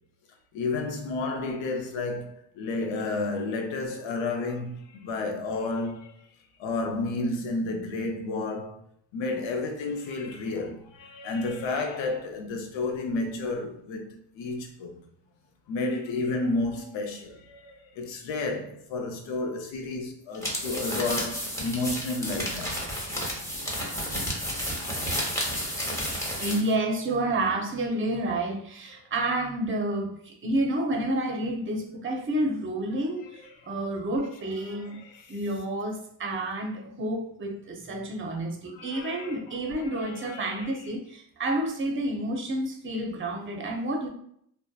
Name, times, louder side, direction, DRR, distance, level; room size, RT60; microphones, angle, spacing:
voice 1, 0.5-6.2 6.6-8.8 9.1-15.0 15.7-22.9 33.4-33.5 34.6-35.3 38.7-40.8, left 3 dB, 80° left, 0.6 m, -31 dB
sound 1, 20.3-26.7, equal, 5° left, 0.8 m, -31 dB
voice 2, 26.4-35.0 35.3-44.1, right 1 dB, 30° right, 0.6 m, -29 dB
2.7 x 2.1 x 2.2 m
cardioid pair, 70°, 44 cm